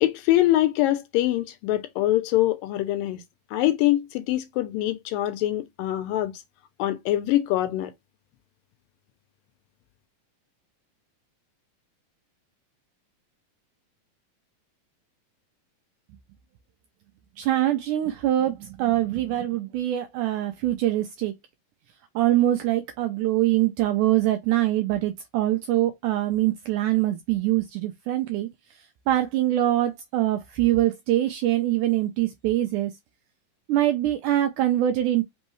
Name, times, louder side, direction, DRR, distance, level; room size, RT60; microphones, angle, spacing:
voice 1, 0.0-3.2 3.5-6.3 6.8-7.9, left 14 dB, 80° left, 2.1 m, -24 dB
voice 2, 17.4-21.3 22.2-32.9 33.7-35.2, right 14 dB, 80° right, 1.8 m, -24 dB
5.4 x 3.0 x 3.1 m
omnidirectional pair, 4.2 m